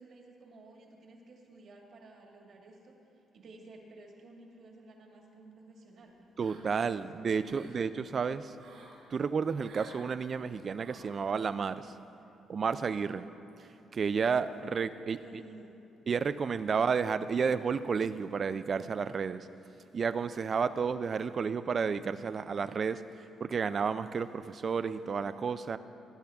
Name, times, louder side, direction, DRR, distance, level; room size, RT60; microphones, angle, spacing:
voice 1, 0.0-6.2 6.5-7.9 14.6-14.7 15.2-15.7, right 2 dB, 60° right, 0 dB, 1.8 m, -54 dB
voice 2, 6.4-8.6 9.1-11.9 12.5-13.3 13.9-15.4 16.1-19.5 19.9-25.8, right 6 dB, 45° right, 13 dB, 0.4 m, -31 dB
sound 1, 6.4-6.9 7.3-7.8 8.6-9.0 9.6-10.1 10.8-11.2, right 3 dB, 80° right, 2.9 m, -54 dB
18.0 x 9.9 x 3.5 m, 2.8 s
cardioid pair, 90°, 0 cm